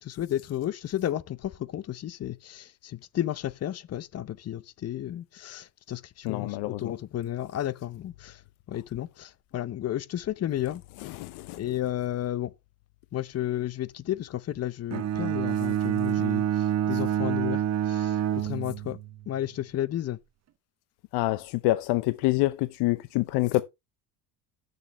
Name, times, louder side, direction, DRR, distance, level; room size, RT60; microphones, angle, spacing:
voice 1, 0.0-8.4 8.7-10.8 11.6-12.5 13.1-16.4 16.9-17.6 17.9-18.1 18.4-19.0 19.3-20.2, left 12 dB, 35° left, 0.8 m, -32 dB
voice 2, 6.2-7.0 11.0-11.8 15.5-15.7 16.9-17.0 21.1-23.6, left 18 dB, 70° left, 0.8 m, -27 dB
Bowed string instrument, 14.9-19.2, right 11 dB, 40° right, 1.1 m, -27 dB
14.5 x 6.8 x 3.1 m
supercardioid pair, 110°, 41 cm